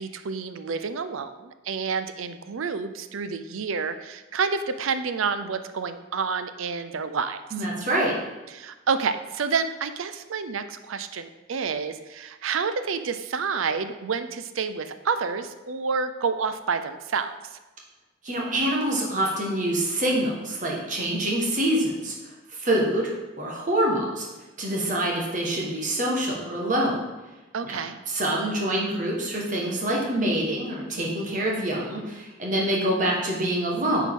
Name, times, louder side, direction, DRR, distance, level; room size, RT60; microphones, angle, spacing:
voice 1, 0.0-7.4 8.5-17.6 27.5-28.0, right 5 dB, 80° right, 10 dB, 0.5 m, -29 dB
voice 2, 7.5-8.1 18.2-22.1 22.5-23.1 23.4-24.3 24.6-27.0 27.6-27.8 28.1-34.1, right 1 dB, 40° right, -2 dB, 1.4 m, -25 dB
9.0 x 4.6 x 3.7 m, 1.1 s
head